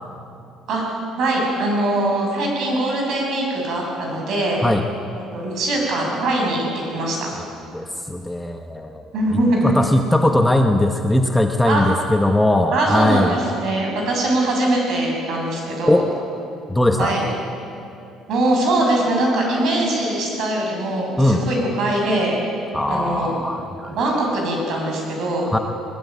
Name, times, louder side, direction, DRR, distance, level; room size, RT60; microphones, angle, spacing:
voice 1, 1.2-4.6 5.3-7.3 9.1-9.7 11.6-11.8 12.7-16.1 16.9-17.2 18.3-22.3 22.9-23.4 23.9-25.5, right 1 dB, 50° right, 0 dB, 7.3 m, -22 dB
voice 2, 7.7-9.0 9.3-13.4 15.9-16.1 16.7-17.2 21.2-21.4 22.7-24.0 25.5-25.6, left 1 dB, 5° left, 4 dB, 0.9 m, -19 dB
21.0 x 21.0 x 9.4 m, 2.7 s
cardioid pair, 170°, 0 cm